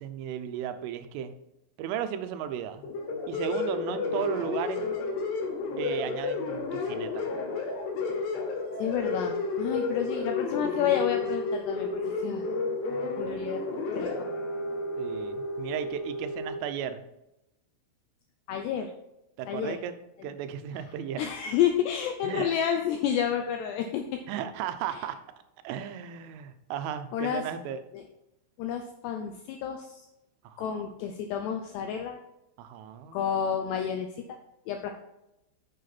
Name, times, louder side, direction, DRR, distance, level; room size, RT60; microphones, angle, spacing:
voice 1, 0.0-1.3 1.8-2.8 3.3-4.9 5.8-7.3 15.0-17.0 19.4-20.0 20.2-21.2 22.2-22.5 24.3-25.2 25.6-27.8 30.4-30.8 32.6-33.2, right 9 dB, 90° right, 9 dB, 3.3 m, -35 dB
sound 1, 2.8-16.6, left 3 dB, 65° left, 3.6 m, -31 dB
voice 2, 8.8-12.4 13.2-13.6 13.9-14.1 18.5-18.9 19.5-19.8 20.2-20.3 21.2-24.2 27.1-27.4 27.9-28.0 28.6-30.0 30.6-32.2 33.1-34.4 34.7-34.9, left 8 dB, 85° left, 4 dB, 2.4 m, -30 dB
9.4 x 6.6 x 4.1 m, 0.89 s
omnidirectional pair, 5.6 m